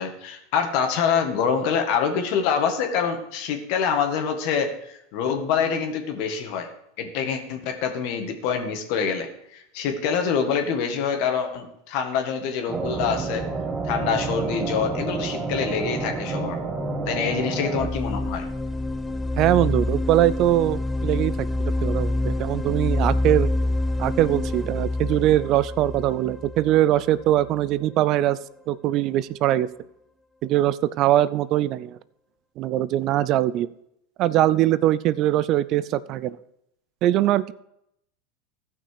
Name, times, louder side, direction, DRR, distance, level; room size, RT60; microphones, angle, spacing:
voice 1, 0.0-6.7 7.0-13.4 13.8-16.6 17.1-18.5, left 6 dB, 60° left, 4 dB, 1.8 m, -25 dB
sound 1, 12.7-17.9, right 3 dB, 25° right, 1.5 m, -29 dB
sound 2, 17.8-27.6, left 2 dB, 5° left, 0.7 m, -27 dB
voice 2, 19.4-21.3 21.8-23.5 24.0-28.4 28.7-29.7 30.4-32.0 32.6-33.7 34.2-36.4 37.0-37.5, right 13 dB, 50° right, 18 dB, 0.4 m, -21 dB
14.5 x 6.0 x 4.8 m, 0.78 s
hypercardioid pair, 105°, 0 cm